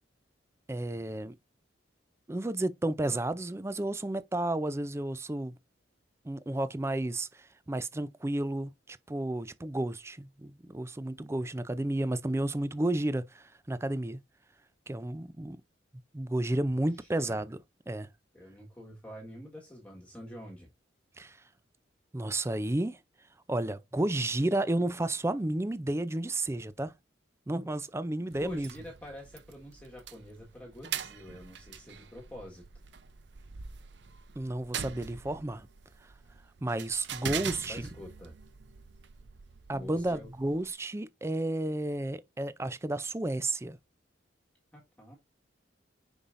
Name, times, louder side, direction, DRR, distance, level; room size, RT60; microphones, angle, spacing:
voice 1, 0.7-1.3 2.3-5.5 6.2-14.2 14.9-15.6 16.1-17.6 17.9-18.1 21.2-21.4 22.1-23.0 23.5-26.9 27.5-28.7 34.4-35.7 36.6-37.9 39.7-43.8, right 1 dB, 15° right, 0.4 m, -32 dB
voice 2, 16.7-17.4 18.3-20.7 28.4-32.6 37.7-38.3 39.7-40.3 44.7-45.2, left 1 dB, 5° left, 1.6 m, -47 dB
Door metal opening and closing, 28.3-40.7, right 7 dB, 65° right, 0.6 m, -43 dB
6.9 x 5.6 x 2.5 m
head